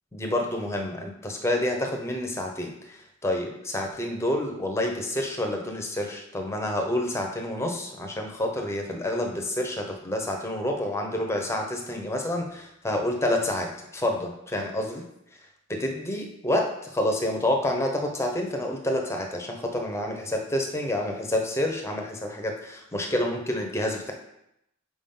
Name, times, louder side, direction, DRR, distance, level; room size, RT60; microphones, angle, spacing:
voice 1, 0.1-15.0 15.8-24.1, left 1 dB, 10° left, 2 dB, 0.9 m, -28 dB
7.0 x 4.8 x 3.8 m, 0.81 s
head